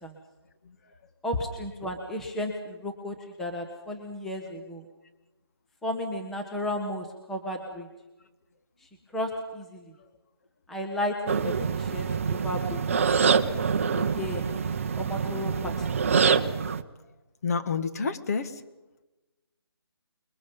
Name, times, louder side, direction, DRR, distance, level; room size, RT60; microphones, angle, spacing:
voice 1, 1.2-4.8 5.8-7.9 9.1-9.9 10.7-13.2 13.9-14.5 15.0-15.9, left 1 dB, ahead, 1 dB, 1.0 m, -33 dB
sound 1, 11.3-16.8, right 6 dB, 30° right, 0.8 m, -25 dB
voice 2, 17.4-18.6, left 5 dB, 35° left, 9 dB, 1.4 m, -28 dB
27.0 x 22.0 x 5.4 m, 1.1 s
figure-of-eight pair, 165°, 13 cm